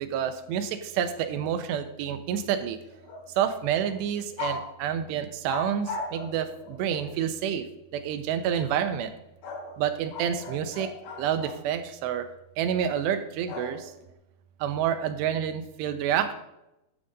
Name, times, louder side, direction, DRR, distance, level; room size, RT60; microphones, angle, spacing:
voice 1, 0.0-2.8 3.4-7.6 7.9-9.1 9.8-10.9 11.2-12.3 12.6-13.9 14.6-16.3, right 9 dB, 90° right, 8 dB, 3.0 m, -28 dB
sound 1, 2.9-3.5 3.8-4.0 4.4-4.7 5.5-7.1 9.4-11.6 13.5-14.1, left 2 dB, 75° left, 4.4 m, -38 dB
13.0 x 12.0 x 2.6 m, 0.89 s
omnidirectional pair, 4.8 m